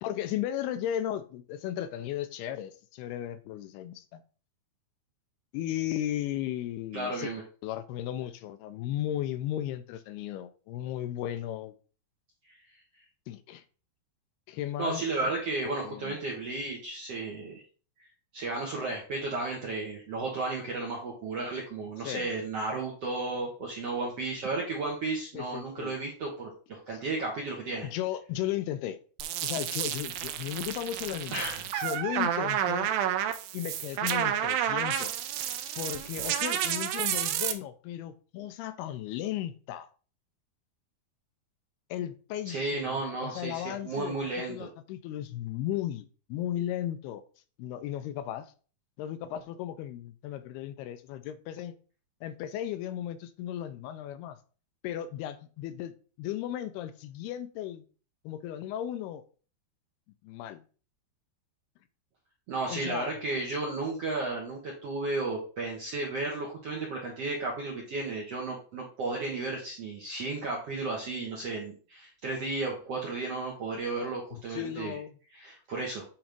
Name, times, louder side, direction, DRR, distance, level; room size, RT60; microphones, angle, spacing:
voice 1, 0.0-4.2 5.5-7.3 7.6-11.7 13.3-13.6 14.5-15.3 15.8-16.2 22.0-22.3 25.3-25.9 27.8-29.0 29.4-31.4 31.7-32.9 33.5-35.3 35.8-39.9 41.9-44.2 44.5-47.2 47.6-48.5 49.0-51.7 52.2-54.4 54.8-57.8 58.2-59.2 60.2-60.6 62.7-63.1 74.3-75.2, left 11 dB, 85° left, 2.5 m, -35 dB
voice 2, 6.9-7.4 12.4-12.6 14.8-17.6 18.3-27.9 31.3-31.6 42.4-44.7 62.5-75.0 75.3-76.0, right 3 dB, 65° right, 1.6 m, -33 dB
sound 1, 29.2-37.5, right 10 dB, 80° right, 2.1 m, -30 dB
8.7 x 3.1 x 5.1 m
omnidirectional pair, 4.7 m